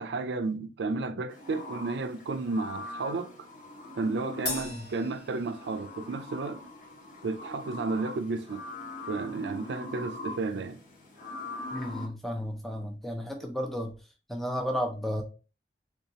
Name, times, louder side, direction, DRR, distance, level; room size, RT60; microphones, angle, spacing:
voice 1, 0.0-3.5 4.0-6.6 7.2-8.6 9.1-10.8, right 3 dB, 75° right, 0.4 m, -32 dB
sound 1, 1.3-12.1, left 2 dB, 45° left, 0.8 m, -42 dB
Crash cymbal, 4.5-6.1, left 3 dB, 75° left, 1.4 m, -38 dB
voice 2, 11.7-13.9 14.3-15.2, equal, ahead, 0.5 m, -33 dB
3.6 x 2.8 x 2.7 m
head